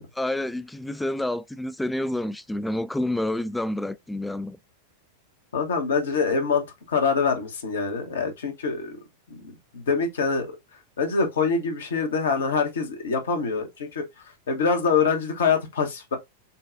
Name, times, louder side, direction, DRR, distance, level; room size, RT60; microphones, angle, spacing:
voice 1, 0.1-4.6, left 1 dB, 5° left, 0.3 m, -28 dB
voice 2, 5.5-9.0 9.3-10.5 11.0-14.0 14.5-16.2, left 5 dB, 65° left, 1.1 m, -25 dB
6.7 x 2.3 x 2.6 m
figure-of-eight pair, 90°, 0 cm